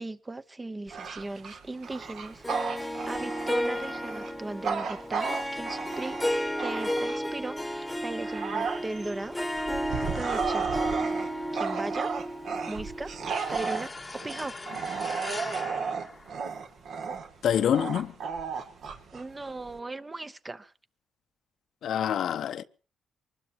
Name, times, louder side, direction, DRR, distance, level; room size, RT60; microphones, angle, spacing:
voice 1, 0.0-2.4 2.8-6.2 6.6-9.4 10.1-10.8 11.5-12.1 12.7-13.1 13.5-13.9 14.2-14.5 19.1-20.7, right 2 dB, 20° right, 0.9 m, -37 dB
Bark / Growling, 0.9-7.4 7.9-19.8, right 5 dB, 70° right, 2.8 m, -34 dB
Harp, 2.4-13.6, equal, 5° left, 1.3 m, -33 dB
sound 1, 13.3-16.9, left 3 dB, 20° left, 1.0 m, -41 dB
voice 2, 17.4-18.1 21.8-22.6, left 9 dB, 70° left, 0.9 m, -26 dB
23.5 x 20.5 x 3.0 m
cardioid pair, 90°, 0 cm